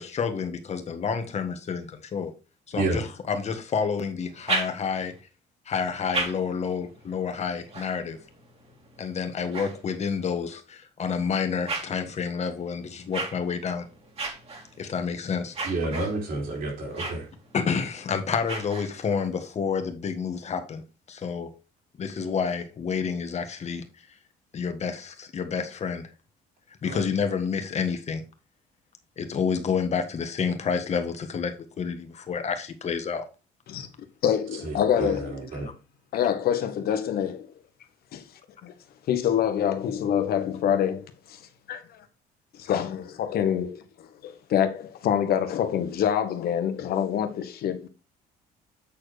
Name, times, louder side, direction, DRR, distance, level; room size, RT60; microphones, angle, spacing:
voice 1, 0.0-2.3 2.7-5.1 5.6-8.2 9.0-13.8 14.8-15.6 17.5-21.5 22.0-23.8 24.5-26.1 26.8-28.2 29.2-33.3, left 6 dB, 40° left, 1.6 m, -29 dB
sound 1, 4.2-5.2 5.8-10.4 11.0-19.3, right 3 dB, 35° right, 2.6 m, -37 dB
voice 2, 15.6-17.3 26.8-27.0 34.6-35.7, right 2 dB, 60° right, 4.3 m, -30 dB
voice 3, 34.2-35.4 36.1-37.5 38.1-38.2 38.6-38.7 39.1-41.4 41.7-42.0 42.7-43.8 44.5-44.7 45.0-47.9, left 9 dB, 65° left, 1.4 m, -25 dB
8.5 x 4.3 x 5.0 m
cardioid pair, 110°, 17 cm